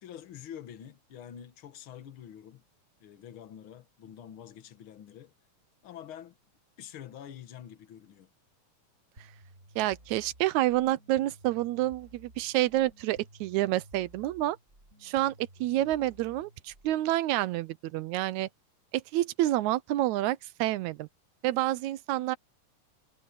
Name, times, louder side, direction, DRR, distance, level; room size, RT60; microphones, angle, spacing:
voice 1, 0.0-2.6 3.0-5.3 5.8-6.4 6.8-8.3, left 10 dB, 50° left, 1.9 m, -46 dB
sound 1, 9.2-17.2, right 1 dB, 25° right, 7.8 m, -55 dB
voice 2, 9.8-14.6 15.0-18.5 18.9-21.1 21.4-22.4, right 15 dB, 80° right, 1.9 m, -28 dB
omnidirectional pair, 3.4 m